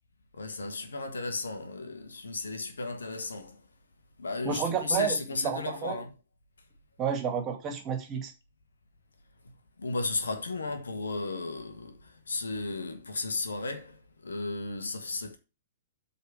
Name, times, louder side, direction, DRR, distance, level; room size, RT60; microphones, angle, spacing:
voice 1, 0.3-3.6 4.2-6.1 9.8-15.4, left 3 dB, 70° left, 1.6 m, -34 dB
voice 2, 4.4-6.0 7.0-8.3, right 7 dB, 25° right, 2.3 m, -31 dB
8.2 x 4.3 x 6.3 m
figure-of-eight pair, 110°, 0 cm